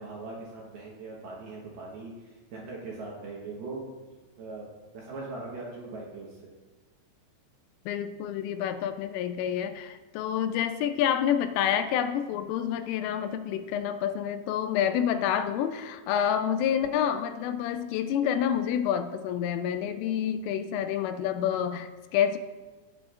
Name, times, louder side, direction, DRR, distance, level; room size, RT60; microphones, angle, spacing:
voice 1, 0.0-3.8 4.4-4.7 4.9-6.5, right 3 dB, 70° right, -3 dB, 2.5 m, -40 dB
voice 2, 7.9-22.4, left 9 dB, 85° left, 8 dB, 3.0 m, -28 dB
18.0 x 7.8 x 2.5 m, 1.3 s
omnidirectional pair, 5.8 m